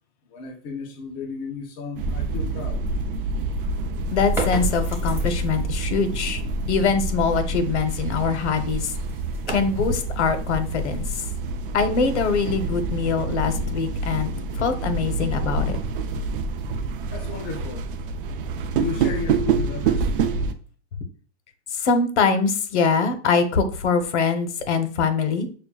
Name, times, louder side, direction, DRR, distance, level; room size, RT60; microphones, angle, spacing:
voice 1, 0.3-2.8 17.1-17.8 18.7-20.1, left 4 dB, 20° left, 0.3 m, -33 dB
sound 1, 2.0-20.5, right 3 dB, 50° right, 0.5 m, -27 dB
voice 2, 4.1-6.4 6.7-8.9 9.5-11.1 11.7-14.3 14.6-15.8 21.7-25.5, left 5 dB, 70° left, 1.0 m, -23 dB
sound 2, 4.1-5.8 8.5-11.4, equal, 5° right, 1.2 m, -33 dB
6.6 x 2.2 x 2.4 m
hypercardioid pair, 145°, 35 cm